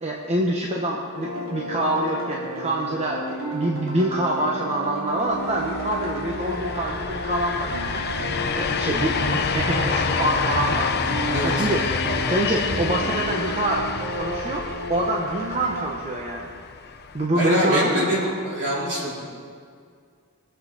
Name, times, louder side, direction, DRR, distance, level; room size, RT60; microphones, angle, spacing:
voice 1, 0.0-8.0 8.6-10.9 11.4-13.9 14.1-16.5 17.1-18.1, right 1 dB, 30° right, -2 dB, 1.0 m, -26 dB
sound 1, 1.1-15.9, equal, 85° right, 3.1 m, -32 dB
sound 2, 5.3-17.3, left 5 dB, 50° left, 0.7 m, -28 dB
voice 2, 11.3-11.7 17.3-19.2, equal, 55° right, -6 dB, 4.1 m, -24 dB
21.5 x 8.0 x 4.1 m, 2.2 s
head